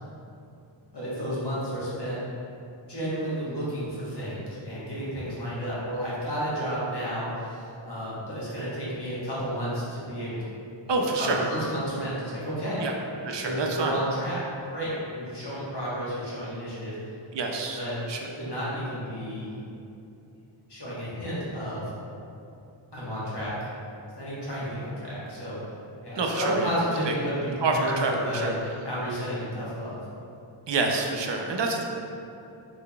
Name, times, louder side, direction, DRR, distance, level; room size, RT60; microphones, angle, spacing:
voice 1, 0.9-2.2 2.9-10.5 11.2-12.9 13.4-14.4 14.7-17.0 17.8-18.0 18.4-19.7 20.7-21.9 22.9-23.6 24.2-25.6 26.0-28.5 28.8-30.0, equal, 55° left, -9 dB, 1.2 m, -31 dB
voice 2, 10.9-11.4 12.8-12.9 13.2-14.0 17.3-17.8 18.1-18.2 26.2-26.7 27.1-27.2 27.6-28.5 30.7-31.8, right 3 dB, 65° right, 2 dB, 0.5 m, -27 dB
3.8 x 3.3 x 2.2 m, 2.7 s
wide cardioid pair, 45°, 48 cm